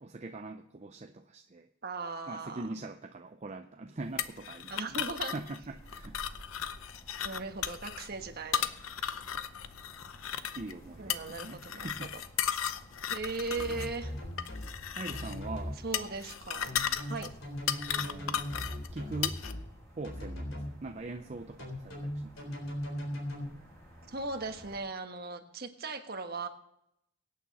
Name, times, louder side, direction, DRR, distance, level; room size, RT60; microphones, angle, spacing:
voice 1, 0.0-1.7 2.3-6.2 10.6-12.1 15.0-15.8 18.0-18.5 18.9-19.4 20.0-22.5, right 2 dB, 35° right, 5 dB, 0.6 m, -42 dB
voice 2, 1.8-2.6 4.7-5.4 7.2-8.7 11.0-11.9 13.1-14.1 15.8-17.3 24.1-26.5, right 3 dB, 50° right, 6 dB, 1.4 m, -38 dB
sound 1, 4.2-19.5, left 9 dB, 90° left, 0.7 m, -36 dB
sound 2, 5.7-24.8, equal, 15° left, 6.9 m, -54 dB
sound 3, 13.6-14.7 15.1-15.8 16.6-19.6 20.0-20.7 21.6-23.4, left 1 dB, 70° left, 4.0 m, -38 dB
23.5 x 8.8 x 4.2 m, 0.79 s
head